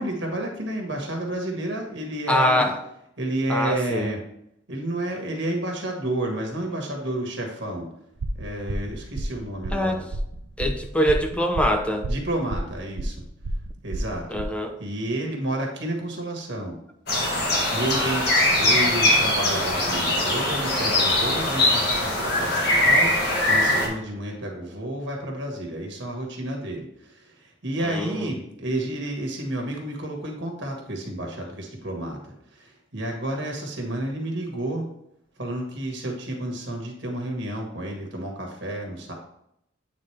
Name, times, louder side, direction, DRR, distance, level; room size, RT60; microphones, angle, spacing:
voice 1, 0.0-2.7 3.2-4.2 4.7-7.9 8.3-10.1 12.1-13.2 13.8-16.8 17.7-32.2 32.5-34.8 35.4-39.1, right 1 dB, 60° right, 1 dB, 1.4 m, -30 dB
voice 2, 2.3-2.8 3.5-4.1 9.7-10.0 10.6-12.1 14.3-14.8 27.8-28.3, equal, 5° left, 5 dB, 0.5 m, -24 dB
sound 1, 8.2-14.4, right 1 dB, 85° right, 0.5 m, -31 dB
sound 2, 17.1-23.9, left 1 dB, 55° left, 1.6 m, -21 dB
8.4 x 3.8 x 3.3 m, 0.77 s
head